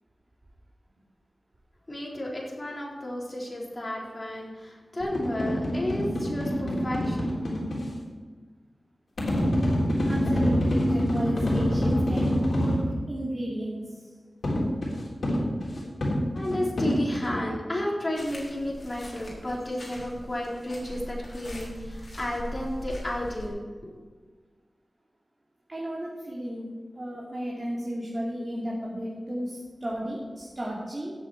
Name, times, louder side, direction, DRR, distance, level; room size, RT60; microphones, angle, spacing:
voice 1, 1.9-7.3 16.3-23.9, left 1 dB, 30° left, -4 dB, 3.9 m, -32 dB
sound 1, 5.0-7.9 9.2-12.9 14.4-17.4, equal, 75° left, 3.6 m, -26 dB
voice 2, 10.1-14.1 25.7-26.7 26.9-31.1, equal, 40° right, -5 dB, 2.9 m, -33 dB
sound 2, 18.1-23.5, equal, 50° left, 4.3 m, -41 dB
16.5 x 7.6 x 4.8 m, 1.4 s
wide cardioid pair, 75°, 0 cm